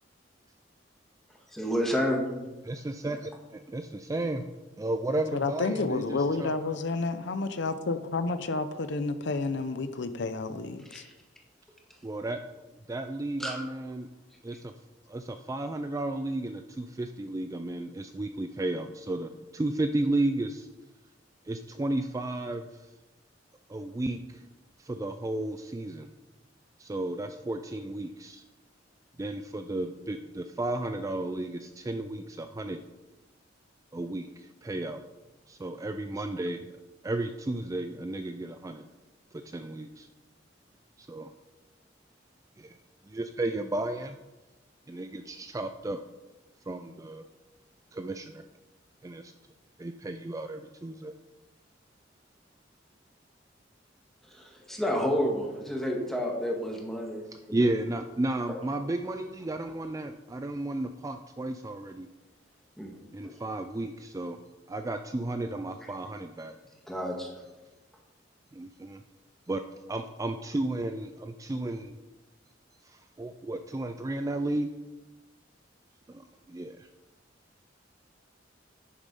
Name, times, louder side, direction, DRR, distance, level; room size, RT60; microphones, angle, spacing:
voice 1, 1.5-2.2 10.9-11.0 13.4-13.6 54.3-57.2 57.5-57.6 58.5-58.6 62.8-62.9 63.2-63.3 66.9-67.3, equal, ahead, 0 dB, 1.8 m, -30 dB
voice 2, 2.7-4.4 4.8-6.8 12.0-12.4 12.9-14.1 14.4-14.7 15.1-20.7 21.5-22.6 23.7-24.4 24.8-26.1 26.8-28.4 29.2-32.8 33.9-35.0 35.5-36.6 37.0-38.8 39.3-40.1 41.0-41.3 42.6-42.8 43.0-44.2 44.9-46.0 46.7-47.2 47.9-48.4 49.0-49.3 49.8-51.1 57.3-62.1 63.1-64.4 64.7-66.6 68.5-69.0 69.5-69.6 69.9-72.0 72.8-74.7 76.1-76.9, right 2 dB, 15° right, 7 dB, 0.4 m, -33 dB
voice 3, 5.3-11.0, left 3 dB, 65° left, 11 dB, 0.6 m, -30 dB
9.8 x 7.3 x 5.4 m, 1.1 s
head